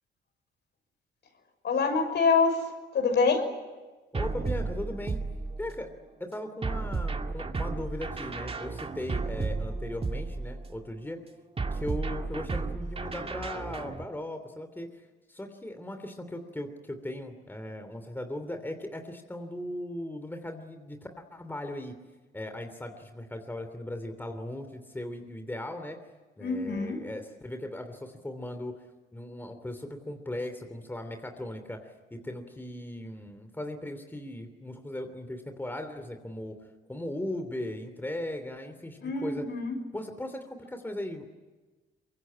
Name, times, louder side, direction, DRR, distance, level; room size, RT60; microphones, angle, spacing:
voice 1, 1.6-2.7 2.9-3.4 26.4-27.0 39.0-39.8, left 4 dB, 60° left, 6 dB, 6.1 m, -25 dB
voice 2, 4.1-5.2 5.6-5.9 6.2-11.2 11.7-14.9 15.3-21.0 21.3-21.9 22.3-26.0 26.4-28.7 29.1-31.8 32.1-36.6 36.9-39.4 39.9-41.3, left 1 dB, 10° left, 7 dB, 3.0 m, -38 dB
sound 1, 4.1-5.9 6.6-10.8 11.6-14.0, right 3 dB, 30° right, 2.3 m, -33 dB
24.0 x 23.0 x 10.0 m, 1.2 s
cardioid pair, 90°, 20 cm